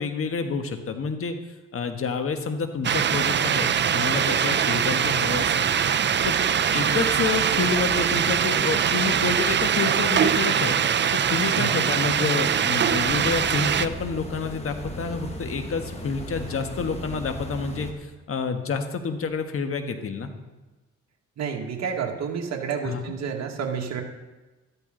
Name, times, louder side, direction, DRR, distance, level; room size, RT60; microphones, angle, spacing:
voice 1, 0.0-1.4 1.7-5.7 6.2-6.4 6.7-10.7 11.1-20.3 22.8-23.0, left 5 dB, 45° left, 7 dB, 1.4 m, -28 dB
sound 1, 2.8-13.9, right 8 dB, 35° right, 0.6 m, -22 dB
voice 2, 11.5-11.9 21.4-24.0, right 6 dB, 60° right, 1 dB, 2.0 m, -30 dB
sound 2, 12.9-17.9, equal, 20° left, 1.9 m, -37 dB
13.0 x 12.0 x 3.9 m, 1.2 s
cardioid pair, 90°, 30 cm